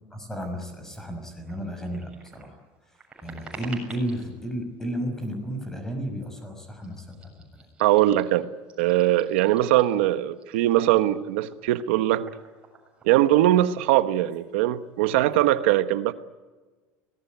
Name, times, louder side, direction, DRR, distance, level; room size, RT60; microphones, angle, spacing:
voice 1, 0.1-2.6 3.2-7.7, equal, 5° left, 5.8 m, -33 dB
sound 1, 0.9-1.0 1.4-4.3 5.1-5.5 6.2-6.4 6.8-10.0 10.3-14.0 14.2-14.4 14.7-15.4, right 4 dB, 15° right, 7.3 m, -49 dB
voice 2, 7.8-8.5 8.8-12.3 13.0-16.1, right 14 dB, 85° right, 1.2 m, -21 dB
25.0 x 19.5 x 9.3 m
cardioid pair, 150°, 6 cm